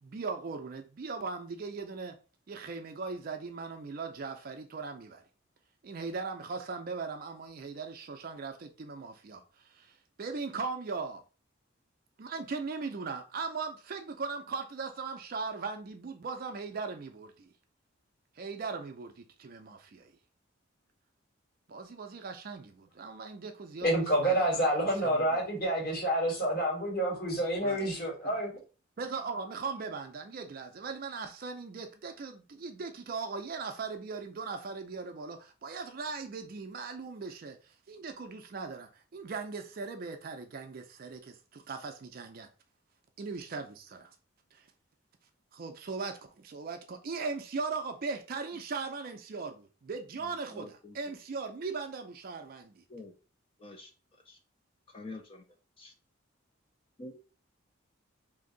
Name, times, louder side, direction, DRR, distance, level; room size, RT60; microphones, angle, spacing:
voice 1, 0.0-2.1 2.5-5.2 5.8-11.2 12.2-17.5 18.4-20.1 21.7-23.9 24.2-24.6 25.0-25.4 27.6-27.9 28.2-28.4 29.0-42.5 43.2-44.1 44.5-44.6 45.5-52.8, right 4 dB, 45° right, 0.4 m, -39 dB
voice 2, 23.8-28.5, right 1 dB, 45° left, 1.5 m, -28 dB
voice 3, 50.5-51.2 52.9-53.1 53.6-53.9 54.3-54.4 54.9-55.4 55.8-55.9 57.0-57.1, left 2 dB, 25° left, 0.4 m, -46 dB
2.8 x 2.6 x 3.8 m
head